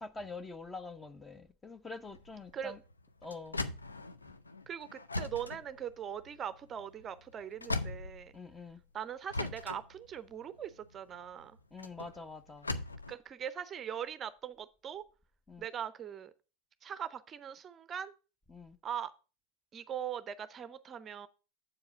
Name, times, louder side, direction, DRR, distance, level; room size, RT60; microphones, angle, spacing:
voice 1, 0.0-2.8 3.2-3.6 8.3-8.8 11.7-12.7 15.5-15.7 18.5-18.8, left 3 dB, 15° left, 0.7 m, -45 dB
sound 1, 2.1-8.8 9.3-13.1, left 2 dB, 90° left, 0.5 m, -40 dB
voice 2, 4.7-8.3 8.9-11.6 13.1-15.0 15.6-16.3 16.8-18.1 18.8-19.1 19.7-21.3, right 9 dB, 30° right, 0.5 m, -41 dB
7.5 x 4.8 x 6.1 m
figure-of-eight pair, 85°, 0 cm